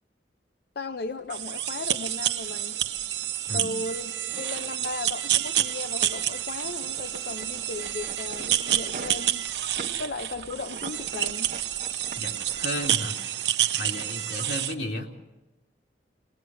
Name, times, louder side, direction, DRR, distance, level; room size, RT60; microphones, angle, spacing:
voice 1, 0.8-2.8 3.5-9.5 10.0-11.5, left 3 dB, 60° left, 9 dB, 0.6 m, -36 dB
sound 1, 1.0-12.9, right 3 dB, 45° right, 0.9 m, -45 dB
sound 2, 1.3-14.7, right 11 dB, 75° right, 0.9 m, -29 dB
voice 2, 12.2-13.2 13.8-15.1, left 1 dB, 85° left, 1 dB, 2.8 m, -33 dB
22.0 x 19.0 x 6.2 m, 1.1 s
head